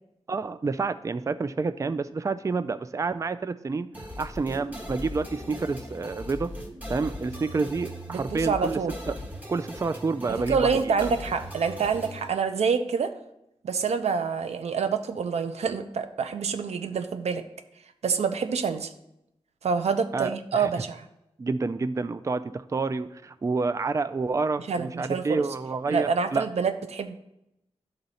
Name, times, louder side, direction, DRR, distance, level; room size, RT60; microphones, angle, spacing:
voice 1, 0.3-6.5 6.9-8.8 9.1-9.2 9.5-11.1 20.1-20.7 21.4-26.4, right 4 dB, 30° right, 12 dB, 0.3 m, -29 dB
sound 1, 3.9-12.3, left 1 dB, 15° right, 1.4 m, -39 dB
voice 2, 8.1-8.9 10.3-13.1 13.6-17.4 18.0-18.9 19.6-21.1 24.7-25.4 25.9-27.1, right 5 dB, 85° right, 9 dB, 0.6 m, -27 dB
11.0 x 3.9 x 4.1 m, 0.84 s
cardioid pair, 55°, 11 cm